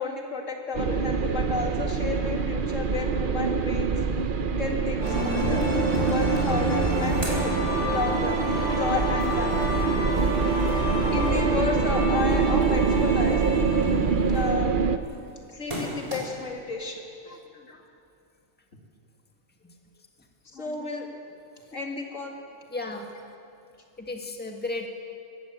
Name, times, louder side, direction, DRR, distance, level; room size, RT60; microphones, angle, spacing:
voice 1, 0.0-3.9 4.6-5.6 6.1-7.5 7.8-9.6 10.6-10.7 11.1-13.4 14.3-14.7 15.5-17.8 20.5-21.1 21.7-22.3, left 4 dB, 70° left, 1 dB, 2.6 m, -32 dB
sound 1, 0.7-15.0, right 5 dB, 45° right, 0.9 m, -25 dB
sound 2, 5.0-14.8, equal, 65° right, 5.0 m, -29 dB
sound 3, 6.8-8.3 8.7-16.6, equal, 25° right, 4.2 m, -41 dB
voice 2, 22.7-23.1 24.0-24.9, left 2 dB, 5° left, 2 dB, 1.7 m, -33 dB
20.5 x 17.0 x 7.5 m, 2.4 s
omnidirectional pair, 1.4 m